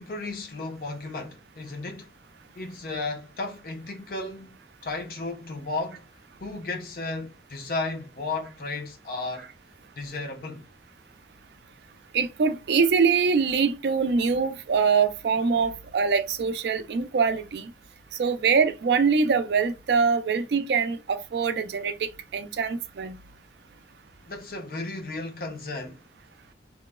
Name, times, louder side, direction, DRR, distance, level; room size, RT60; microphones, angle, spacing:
voice 1, 0.0-2.1 2.6-4.6 4.8-6.0 6.4-9.5 10.0-10.7 24.2-26.0, left 3 dB, 50° left, 0.5 m, -34 dB
voice 2, 12.1-17.7 18.2-23.2, right 5 dB, 70° right, 0.4 m, -24 dB
2.9 x 2.0 x 2.2 m
head